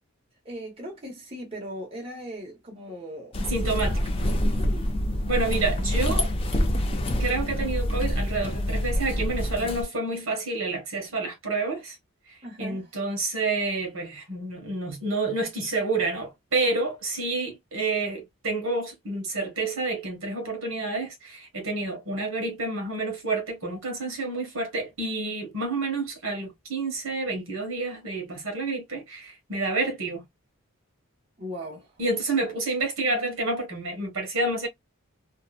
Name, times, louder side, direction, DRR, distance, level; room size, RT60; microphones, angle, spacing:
voice 1, 0.4-3.8 4.4-4.9 12.4-12.9 31.4-31.9, equal, 25° right, 0.9 m, -39 dB
sound 1, 3.3-9.8, left 1 dB, 25° left, 0.4 m, -26 dB
voice 2, 3.4-4.0 5.3-6.3 7.2-12.0 12.3-30.2 32.0-34.7, right 3 dB, 65° right, 1.1 m, -29 dB
2.7 x 2.1 x 2.2 m
head